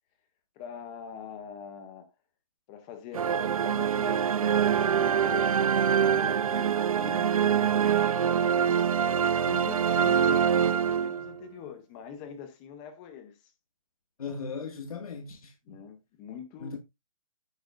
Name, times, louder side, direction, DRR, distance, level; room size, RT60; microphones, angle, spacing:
voice 1, 0.6-2.1 2.7-8.9 9.4-13.5 15.7-16.8, left 8 dB, 10° left, 0.6 m, -44 dB
sound 1, 3.1-11.5, right 8 dB, 80° right, 0.8 m, -25 dB
voice 2, 14.2-15.8 16.6-16.8, left 5 dB, 90° left, 1.9 m, -38 dB
10.5 x 10.0 x 2.5 m
hypercardioid pair, 180°, 18 cm